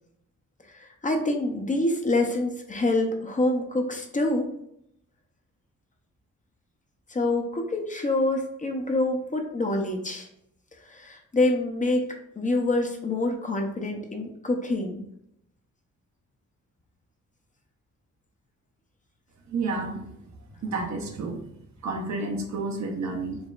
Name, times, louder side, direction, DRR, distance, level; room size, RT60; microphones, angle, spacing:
voice 1, 0.7-4.5 7.1-10.3 10.8-12.1 12.4-15.0, left 2 dB, 25° left, 3 dB, 0.6 m, -26 dB
voice 2, 19.5-20.0 20.6-21.4 21.8-23.4, right 3 dB, 65° right, 2 dB, 0.8 m, -30 dB
4.7 x 3.1 x 2.4 m, 0.76 s
cardioid pair, 105°, 31 cm